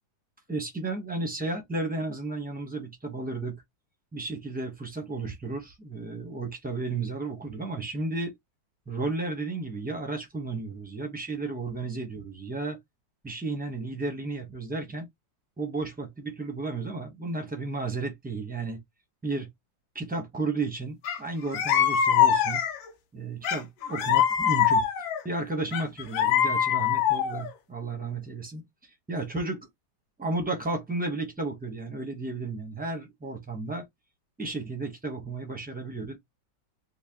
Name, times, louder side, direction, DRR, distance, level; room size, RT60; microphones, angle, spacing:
voice 1, 0.5-3.6 4.1-8.3 8.9-12.8 13.2-15.1 15.6-18.8 19.2-19.5 19.9-22.6 23.1-28.6 29.1-29.7 30.2-33.8 34.4-36.2, right 3 dB, 10° right, 0.4 m, -33 dB
sound 1, 21.0-21.2 21.5-22.9 23.4-25.2 25.7-27.5, left 9 dB, 90° left, 1.5 m, -23 dB
4.1 x 2.2 x 3.5 m
omnidirectional pair, 2.0 m